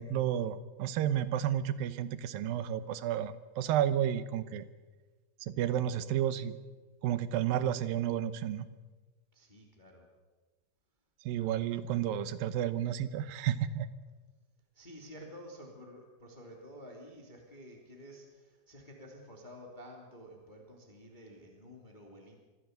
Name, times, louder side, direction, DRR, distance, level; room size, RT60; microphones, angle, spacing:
voice 1, 0.0-4.6 5.4-6.6 7.0-8.7 11.3-13.9, right 10 dB, 75° right, 14 dB, 2.6 m, -31 dB
voice 2, 9.3-10.1 11.3-11.7 14.7-22.3, equal, 15° left, 0 dB, 2.6 m, -51 dB
24.5 x 16.0 x 8.0 m, 1.3 s
omnidirectional pair, 4.3 m